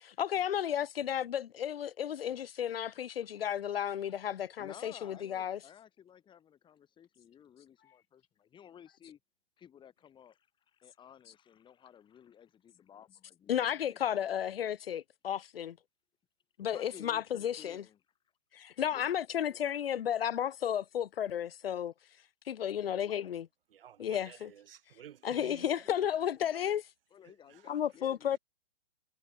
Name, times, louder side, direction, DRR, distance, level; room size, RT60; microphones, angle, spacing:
voice 1, 0.0-5.6 13.5-15.8 16.6-17.8 18.5-21.9 22.5-23.5 24.0-24.5 25.2-26.8 27.7-28.4, left 9 dB, 65° left, 1.7 m, -33 dB
voice 2, 4.1-9.2 9.6-14.8 16.6-18.0 18.9-19.1 19.5-19.6 22.9-23.3 25.3-26.7 27.1-28.4, left 9 dB, 15° left, 2.7 m, -56 dB
voice 3, 23.7-25.8 27.2-27.8, right 10 dB, 60° right, 7.9 m, -53 dB
hypercardioid pair, 145°, 31 cm